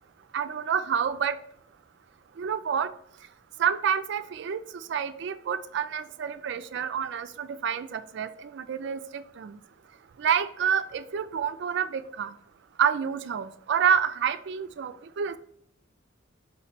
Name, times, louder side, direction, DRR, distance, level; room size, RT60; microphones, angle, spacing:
voice 1, 0.3-1.4 2.4-2.9 3.6-4.6 4.9-9.6 10.2-12.3 12.8-15.4, right 7 dB, 60° right, 11 dB, 0.3 m, -28 dB
4.3 x 2.9 x 4.2 m, 0.68 s
head